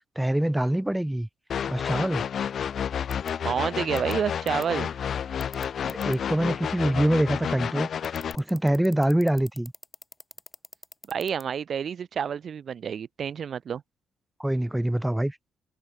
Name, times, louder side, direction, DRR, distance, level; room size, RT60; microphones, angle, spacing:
voice 1, 0.2-1.3 1.7-2.2 5.8-7.9 8.3-9.7 14.4-15.4, right 1 dB, 5° right, 0.5 m, -25 dB
sound 1, 1.5-8.3, left 8 dB, 55° left, 1.9 m, -30 dB
sound 2, 3.1-3.3 4.0-4.1 4.5-4.7 5.4-6.2 8.0-11.4, left 2 dB, 15° left, 1.6 m, -44 dB
voice 2, 3.4-4.9 11.1-13.8, right 7 dB, 55° right, 0.5 m, -29 dB
cardioid pair, 90°, 0 cm